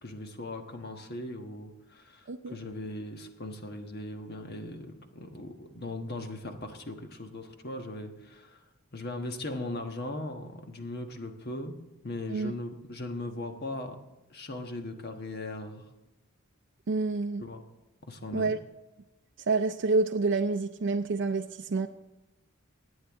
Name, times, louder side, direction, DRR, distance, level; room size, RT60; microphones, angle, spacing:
voice 1, 0.0-8.6 8.9-11.8 12.0-14.0 14.3-15.8 17.4-17.6 18.1-18.5, left 2 dB, 50° left, 5 dB, 1.3 m, -39 dB
voice 2, 16.9-17.4 18.3-18.6 19.5-21.9, right 3 dB, 60° right, 4 dB, 0.5 m, -28 dB
20.5 x 8.7 x 3.6 m, 1.0 s
head